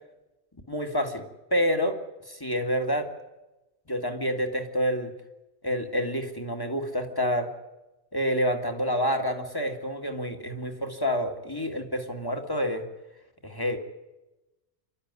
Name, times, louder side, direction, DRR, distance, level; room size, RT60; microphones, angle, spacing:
voice 1, 0.7-1.2 1.5-2.0 2.3-3.1 3.9-5.1 5.6-7.5 8.1-12.9 13.4-13.8, equal, 20° left, 4 dB, 2.0 m, -28 dB
28.0 x 12.5 x 9.6 m, 1.0 s
omnidirectional pair, 1.1 m